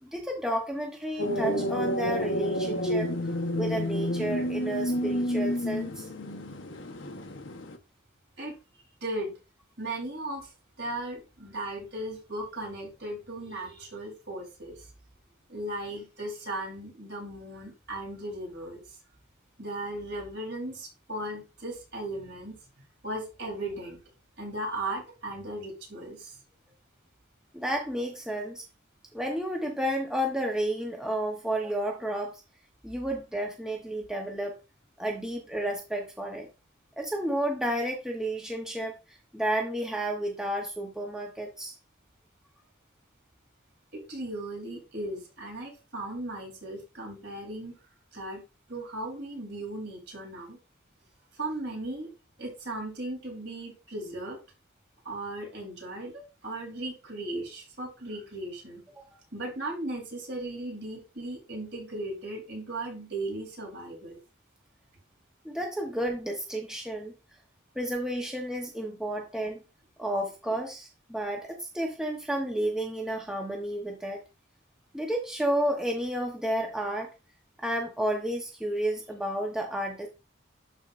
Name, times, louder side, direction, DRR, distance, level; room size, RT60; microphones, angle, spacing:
voice 1, 0.0-3.1 3.5-6.1 27.5-28.6 29.1-32.4 32.8-34.5 35.0-36.5 37.0-41.7 65.4-67.1 67.8-69.6 70.0-74.2 74.9-77.1 77.6-80.1, right 1 dB, 5° right, 1 dB, 0.9 m, -31 dB
sound 1, 1.2-7.8, equal, 75° left, 1.0 m, -30 dB
voice 2, 9.0-9.3 9.8-10.5 10.8-14.9 15.5-19.0 19.6-22.6 23.0-24.0 24.4-26.4 43.9-47.7 48.1-48.4 48.7-50.6 51.3-52.1 52.4-54.4 55.0-58.8 59.3-64.2, right 1 dB, 60° right, -1 dB, 3.8 m, -37 dB
12.0 x 4.4 x 2.5 m, 0.28 s
head